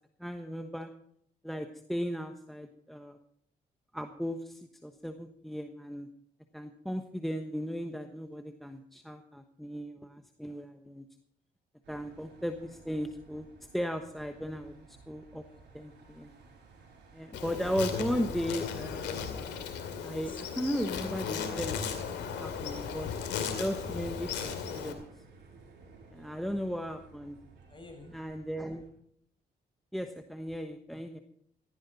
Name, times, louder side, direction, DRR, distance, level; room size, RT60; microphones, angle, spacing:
voice 1, 0.2-0.9 1.4-3.2 3.9-6.1 6.5-11.1 11.9-15.4 15.7-16.3 17.1-25.1 26.1-27.4 28.1-28.9 29.9-31.2, equal, ahead, 7 dB, 1.1 m, -36 dB
sound 1, 11.8-28.9, right 4 dB, 80° right, 7.1 m, -57 dB
voice 2, 15.5-15.9 19.9-20.4 27.7-28.1, left 2 dB, 30° left, 3 dB, 6.1 m, -55 dB
Insect, 17.3-24.9, left 6 dB, 90° left, 2.5 m, -36 dB
16.5 x 15.0 x 4.1 m, 0.69 s
cardioid pair, 75°, 18 cm